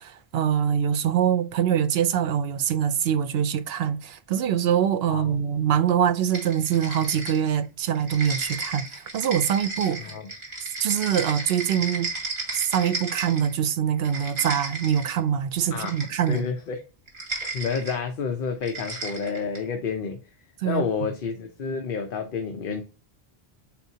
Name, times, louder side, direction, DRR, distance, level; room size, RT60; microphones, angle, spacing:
voice 1, 0.0-10.0 10.8-12.1 12.5-16.5 20.6-21.1, right 9 dB, 75° right, 0.8 m, -24 dB
sound 1, 6.3-7.6 7.9-13.6 13.9-15.2 15.8-16.5 17.1-18.0 18.6-19.7, right 3 dB, 40° right, 2.5 m, -34 dB
voice 2, 16.3-16.8 17.4-20.2 20.6-22.8, left 5 dB, 60° left, 0.8 m, -29 dB
8.0 x 4.3 x 2.8 m
omnidirectional pair, 1.0 m